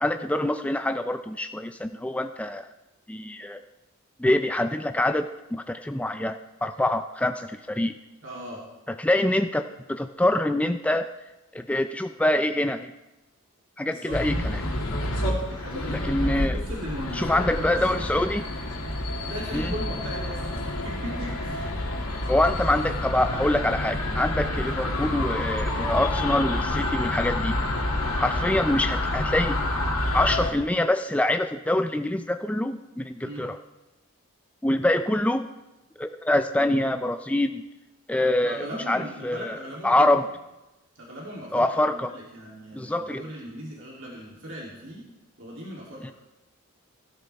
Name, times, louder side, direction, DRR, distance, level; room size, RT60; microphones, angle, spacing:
voice 1, 0.0-2.7 3.1-3.6 4.2-7.9 9.0-11.1 11.5-12.9 13.8-14.5 15.9-16.6 17.1-18.4 19.5-19.7 22.3-27.5 28.2-29.6 30.1-33.6 34.6-35.5 36.0-37.6 38.1-39.6 39.8-40.3 41.5-42.1 42.7-43.2 46.0-46.1, left 1 dB, 5° left, 8 dB, 0.3 m, -25 dB
voice 2, 8.2-8.6 13.9-14.2 14.9-15.9 16.2-18.1 19.3-21.7 33.2-33.4 38.4-40.2 41.0-45.0 45.4-46.1, equal, 60° right, -4 dB, 2.8 m, -38 dB
sound 1, 14.1-30.5, left 1 dB, 90° left, 2.3 m, -28 dB
17.0 x 12.5 x 3.4 m, 1.0 s
head